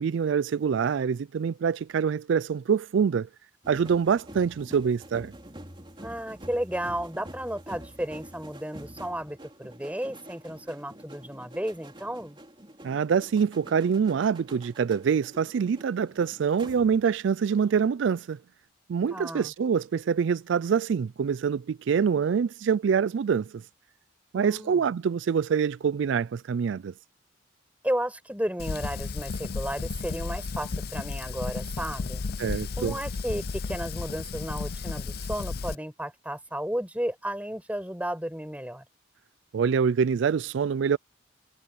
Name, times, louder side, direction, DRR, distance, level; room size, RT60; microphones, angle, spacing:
voice 1, 0.0-3.3 3.7-5.3 12.8-18.4 18.9-23.6 24.3-26.9 32.4-32.9 39.5-41.0, right 6 dB, 65° right, 0.3 m, -25 dB
sound 1, 3.6-17.2 17.5-17.8, right 1 dB, 25° right, 3.5 m, -47 dB
voice 2, 6.0-12.4 19.1-19.5 24.3-24.9 27.8-32.2 32.8-38.8, right 1 dB, 5° right, 5.3 m, -33 dB
Fire, 28.6-35.7, left 4 dB, 50° left, 0.5 m, -33 dB
head